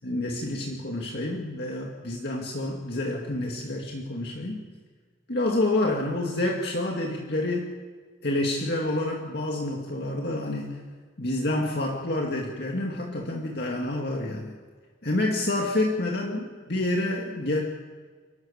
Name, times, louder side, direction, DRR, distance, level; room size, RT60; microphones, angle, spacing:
voice 1, 0.0-4.6 5.3-7.8 8.2-10.8 11.2-14.5 15.0-17.6, left 1 dB, 55° left, 0 dB, 2.3 m, -28 dB
29.5 x 13.0 x 7.4 m, 1.5 s
head